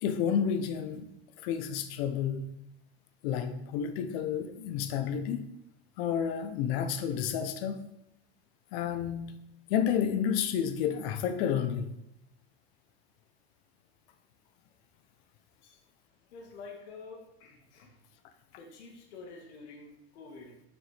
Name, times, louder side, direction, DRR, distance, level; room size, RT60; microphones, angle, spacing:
voice 1, 0.0-1.1 1.4-2.5 3.2-5.5 6.0-7.8 8.7-9.4 9.7-11.9, left 8 dB, 70° left, 10 dB, 0.9 m, -30 dB
voice 2, 16.3-18.0 18.6-20.6, left 4 dB, 85° left, 1 dB, 2.0 m, -48 dB
7.4 x 6.1 x 3.5 m, 0.85 s
supercardioid pair, 125°, 33 cm